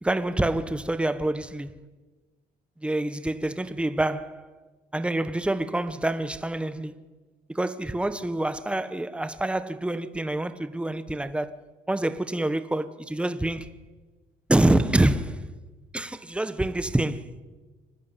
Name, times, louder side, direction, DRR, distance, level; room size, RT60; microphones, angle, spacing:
voice 1, 0.0-1.7 2.8-4.5 4.9-7.0 7.5-11.5 11.9-13.7 14.5-15.5 15.9-17.2, right 1 dB, 5° right, 1.3 m, -26 dB
25.0 x 19.5 x 9.3 m
cardioid pair, 110°, 17 cm